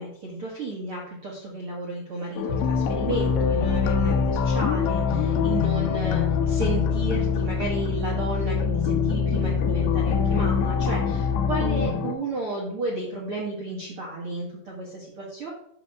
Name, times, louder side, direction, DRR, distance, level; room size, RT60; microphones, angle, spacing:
voice 1, 0.0-15.5, right 2 dB, 85° right, -3 dB, 1.2 m, -33 dB
sound 1, 2.4-12.1, left 7 dB, 75° left, 3.0 m, -27 dB
sound 2, 2.5-11.9, left 5 dB, 55° left, 1.8 m, -26 dB
12.0 x 6.5 x 3.5 m, 0.74 s
omnidirectional pair, 5.5 m